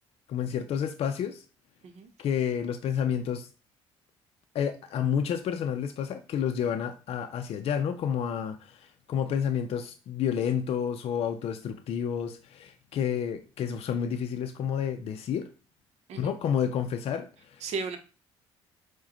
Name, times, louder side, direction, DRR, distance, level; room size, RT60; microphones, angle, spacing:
voice 1, 0.3-1.4 2.2-3.5 4.5-15.5 16.2-17.7, left 8 dB, 55° left, 6 dB, 0.4 m, -30 dB
voice 2, 17.6-18.0, right 4 dB, 65° right, 8 dB, 0.7 m, -34 dB
4.7 x 2.2 x 2.9 m, 0.35 s
supercardioid pair, 70°, 12 cm